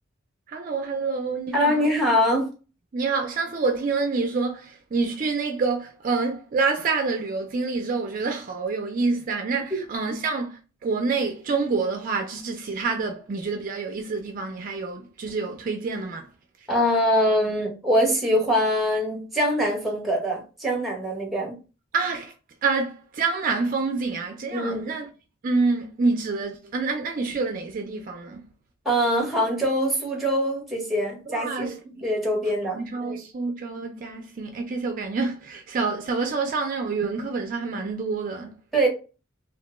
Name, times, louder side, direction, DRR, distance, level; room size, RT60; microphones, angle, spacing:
voice 1, 0.5-1.9 2.9-16.3 21.9-22.3 22.6-25.1 25.4-28.4 31.3-32.0 32.7-38.6, right 4 dB, 40° right, 0.3 m, -27 dB
voice 2, 1.5-2.5 9.7-9.8 16.7-21.6 24.5-24.9 28.8-31.8 32.0-33.2 38.7-38.9, equal, ahead, 0.8 m, -23 dB
2.8 x 2.1 x 2.9 m
head